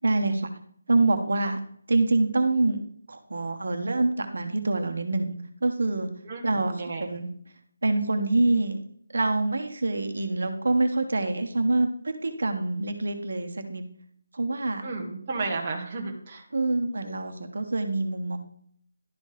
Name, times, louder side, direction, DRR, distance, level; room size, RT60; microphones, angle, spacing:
voice 1, 0.0-0.5 0.9-1.6 1.9-2.8 3.1-6.1 6.4-6.7 7.0-7.3 7.8-8.8 9.1-13.8 14.3-14.8 16.5-18.4, right 2 dB, 55° right, 6 dB, 1.0 m, -25 dB
voice 2, 6.2-7.0 14.8-16.5, right 3 dB, 15° right, -3 dB, 0.8 m, -33 dB
11.5 x 4.1 x 3.3 m, 0.62 s
figure-of-eight pair, 180°, 0 cm